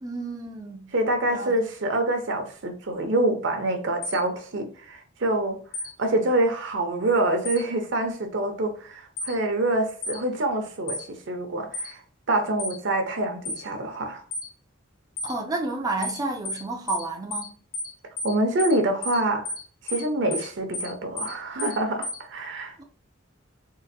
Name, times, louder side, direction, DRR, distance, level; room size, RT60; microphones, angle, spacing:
voice 1, 0.0-0.9 1.2-1.5 15.2-17.5 22.8-22.9, right 2 dB, 20° right, 0.4 m, -31 dB
voice 2, 0.9-5.6 6.0-12.0 12.3-14.2 18.2-19.5 19.8-22.7, right 1 dB, 65° right, 0.8 m, -26 dB
sound 1, 4.0-4.2 5.7-5.9 7.5-7.6 9.2-9.3 10.0-10.2 10.9-11.1 11.7-11.9 12.6-12.8 13.5-13.6 14.3-14.5 15.2-15.3 16.0-16.2 16.5-16.6 16.9-17.1 17.3-17.5 17.7-17.9 18.2-18.3 18.6-18.8 19.0-19.2 19.5-19.6 19.9-20.1 20.3-20.5 20.7-20.9 21.2-21.3 21.6-21.8 22.0-22.2, left 1 dB, 80° left, 1.5 m, -32 dB
3.8 x 2.5 x 2.6 m
head